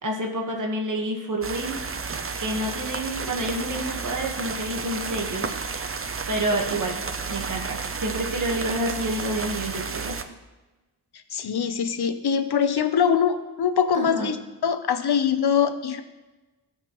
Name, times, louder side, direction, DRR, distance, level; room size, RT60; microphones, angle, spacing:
voice 1, 0.0-1.8 2.4-5.6 6.3-10.2 13.9-14.3, right 1 dB, 50° right, 1 dB, 1.4 m, -29 dB
sound 1, 1.4-10.2, right 5 dB, 35° right, 0.6 m, -32 dB
voice 2, 11.3-14.4 14.6-16.0, left 7 dB, 75° left, 9 dB, 0.8 m, -23 dB
16.5 x 5.8 x 3.0 m, 1.1 s
wide cardioid pair, 85°, 39 cm